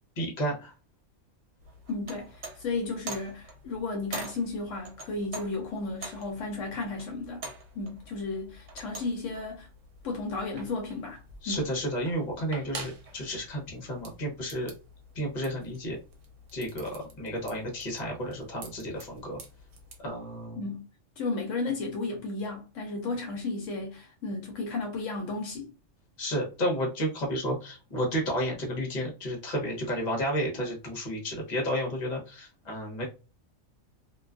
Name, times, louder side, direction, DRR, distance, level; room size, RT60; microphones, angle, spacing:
voice 1, 0.2-0.7 11.4-14.7 15.1-16.0 16.5-19.4 20.0-20.6 26.2-33.0, equal, 40° left, 0.9 m, -32 dB
sound 1, 1.6-20.0, right 3 dB, 70° right, 1.0 m, -46 dB
voice 2, 1.9-7.5 7.7-9.7 10.0-11.2 11.5-11.6 20.6-20.9 21.2-25.7, left 3 dB, 75° left, 0.9 m, -34 dB
2.5 x 2.2 x 2.4 m
omnidirectional pair, 1.4 m